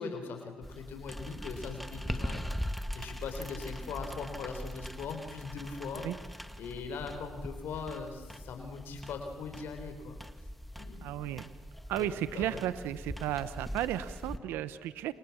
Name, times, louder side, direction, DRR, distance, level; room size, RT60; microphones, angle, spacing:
voice 1, 0.0-2.5 2.9-10.2 10.8-11.3 11.9-12.1 12.3-12.6, left 5 dB, 75° left, 6 dB, 4.2 m, -40 dB
sound 1, 0.6-14.4, equal, ahead, 2.1 m, -41 dB
voice 2, 11.0-11.5 11.9-15.1, right 12 dB, 90° right, 14 dB, 1.1 m, -34 dB
28.5 x 28.5 x 7.3 m, 1.4 s
supercardioid pair, 60°, 4 cm